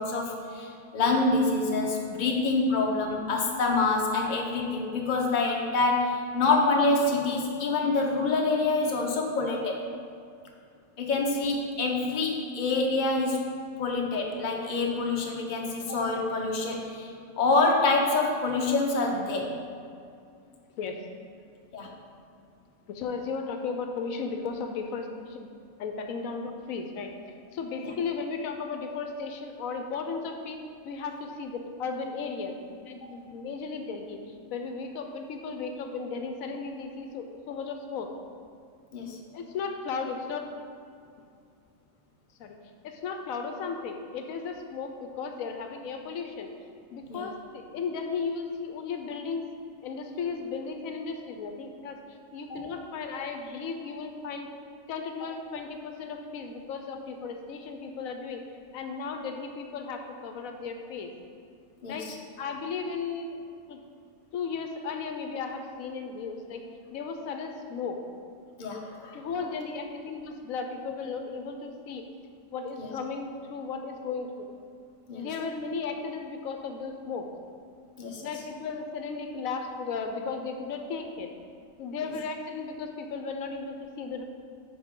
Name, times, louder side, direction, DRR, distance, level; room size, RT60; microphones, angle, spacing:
voice 1, 0.0-9.8 11.0-13.4 13.8-19.5 21.7-21.9 27.8-27.9 38.9-39.2 47.1-47.3 61.8-62.1 68.6-69.2 72.8-72.9 75.1-75.3 78.0-78.2, left 3 dB, 40° left, 0 dB, 0.9 m, -26 dB
voice 2, 22.9-25.5 25.8-27.1 27.5-38.1 39.3-40.5 42.4-42.6 42.8-46.5 46.9-49.4 49.8-54.5 54.9-58.4 58.7-61.1 61.9-62.1 62.4-63.4 63.7-63.8 64.3-66.6 66.9-68.0 69.1-72.0 72.5-74.5 75.1-77.3 78.2-81.3 81.8-84.2, left 5 dB, 80° left, 5 dB, 1.0 m, -35 dB
10.0 x 4.5 x 3.7 m, 2.4 s
omnidirectional pair, 1.4 m